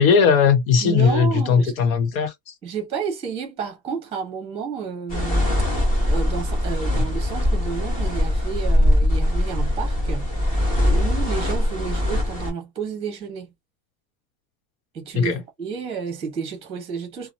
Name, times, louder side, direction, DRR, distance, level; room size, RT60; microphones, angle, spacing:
voice 1, 0.0-2.5 6.9-7.0 15.1-15.4, left 6 dB, 80° left, 1.1 m, -18 dB
voice 2, 0.8-1.8 2.6-5.5 6.1-10.3 10.8-13.5 14.9-17.3, right 6 dB, 15° right, 1.1 m, -31 dB
sound 1, 5.1-12.5, left 1 dB, 20° left, 1.2 m, -21 dB
2.9 x 2.3 x 2.6 m
supercardioid pair, 180°, 40 cm